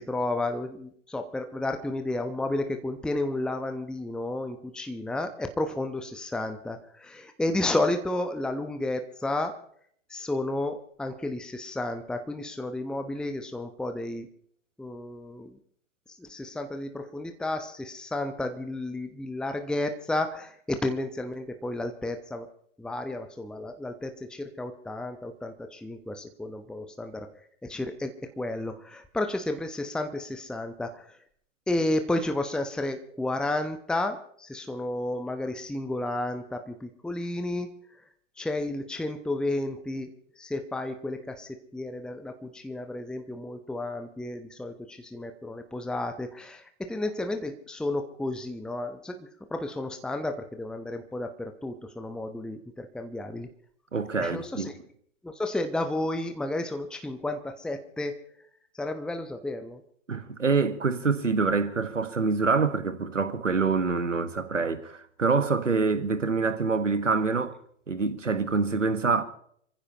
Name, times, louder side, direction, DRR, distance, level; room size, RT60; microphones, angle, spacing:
voice 1, 0.0-9.6 10.1-14.3 14.8-15.6 16.2-22.5 22.8-27.3 27.6-31.0 31.7-37.7 38.4-40.1 40.4-53.5 54.2-54.7 55.2-58.2 58.8-59.8, left 2 dB, ahead, 1.0 m, -32 dB
voice 2, 53.9-54.7 60.1-67.6 67.9-69.2, right 4 dB, 85° right, 1.5 m, -26 dB
27.0 x 15.0 x 2.9 m
figure-of-eight pair, 100°, 37 cm